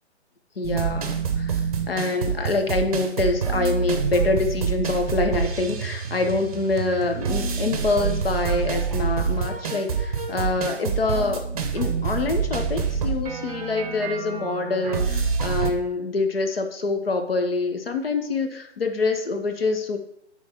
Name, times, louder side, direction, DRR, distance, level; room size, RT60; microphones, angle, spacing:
voice 1, 0.6-1.6 1.9-11.5 11.7-20.0, left 3 dB, 55° left, 7 dB, 0.8 m, -25 dB
sound 1, 0.6-15.7, right 6 dB, 30° right, 0.7 m, -27 dB
9.1 x 3.1 x 4.1 m, 0.70 s
figure-of-eight pair, 135°, 35 cm